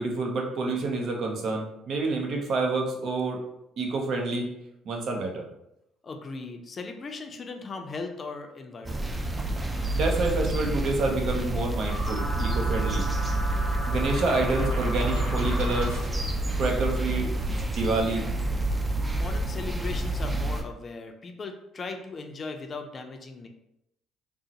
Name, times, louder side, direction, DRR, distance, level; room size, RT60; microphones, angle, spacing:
voice 1, 0.0-3.4 3.8-4.5 4.9-5.5 9.9-13.0 13.9-15.9 16.6-18.3, right 3 dB, 60° right, 1 dB, 0.7 m, -28 dB
voice 2, 6.0-9.1 18.9-23.5, left 4 dB, 40° left, 5 dB, 0.4 m, -38 dB
sound 1, 8.8-20.6, right 1 dB, 20° right, 0.4 m, -28 dB
sound 2, 11.9-16.3, equal, 80° right, 1.1 m, -35 dB
3.7 x 2.0 x 2.8 m, 0.81 s
supercardioid pair, 80°, 0 cm